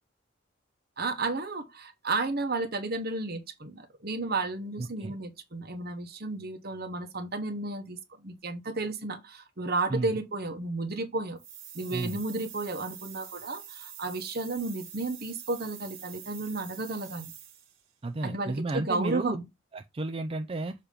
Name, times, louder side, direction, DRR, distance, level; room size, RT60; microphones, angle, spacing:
voice 1, 1.0-11.4 11.7-17.3 18.2-19.4, right 3 dB, 50° right, 1.1 m, -33 dB
voice 2, 4.8-5.1 9.9-10.2 11.9-12.2 18.0-19.4 19.7-20.7, right 2 dB, 30° right, 0.4 m, -32 dB
sound 1, 11.4-17.8, right 9 dB, 80° right, 1.4 m, -46 dB
6.8 x 3.0 x 5.0 m
head